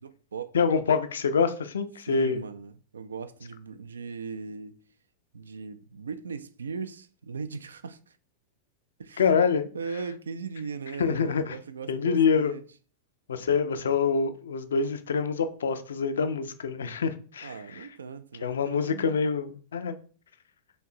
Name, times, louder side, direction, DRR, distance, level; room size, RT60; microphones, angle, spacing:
voice 1, 0.0-0.8 2.1-4.7 5.3-8.2 9.0-9.3 9.7-12.6 17.4-19.2, right 5 dB, 70° right, 0.3 m, -38 dB
voice 2, 0.5-2.4 9.2-9.7 11.0-11.6 11.9-12.5 13.3-17.8 18.4-20.0, left 5 dB, 65° left, 0.4 m, -26 dB
4.4 x 3.2 x 2.6 m
figure-of-eight pair, 90°, 0 cm